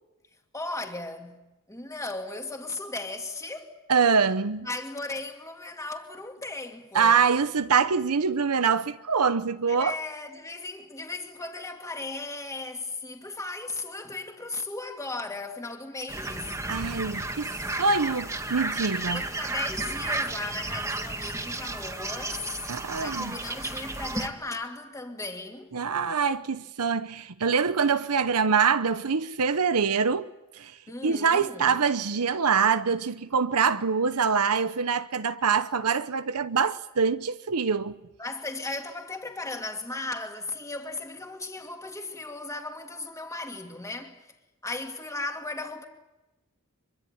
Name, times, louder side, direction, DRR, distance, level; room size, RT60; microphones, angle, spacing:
voice 1, 0.5-3.7 4.6-7.2 9.7-16.6 19.1-22.5 22.9-25.7 30.9-31.8 38.2-44.2 44.6-45.8, left 2 dB, 15° left, 2.6 m, -36 dB
voice 2, 3.9-4.7 6.9-9.9 16.7-17.5 17.8-19.2 22.7-23.3 25.7-30.8 31.0-38.0, right 5 dB, 85° right, 0.9 m, -24 dB
sound 1, 16.1-24.3, right 2 dB, 15° right, 1.9 m, -33 dB
24.5 x 24.0 x 8.8 m
head